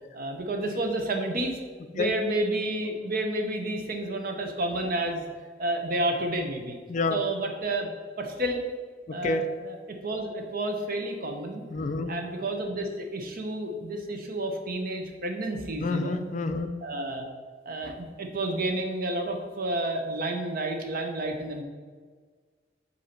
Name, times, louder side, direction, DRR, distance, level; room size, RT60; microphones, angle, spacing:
voice 1, 0.1-1.6 1.9-5.2 5.6-6.8 7.1-7.9 8.2-8.6 9.1-11.6 12.1-16.2 16.8-17.3 17.7-21.6, right 1 dB, 50° right, 4 dB, 0.8 m, -30 dB
voice 2, 6.9-7.2 9.1-9.5 11.7-12.1 15.8-16.7, left 3 dB, 40° left, 8 dB, 0.4 m, -28 dB
8.0 x 2.8 x 5.8 m, 1.5 s
head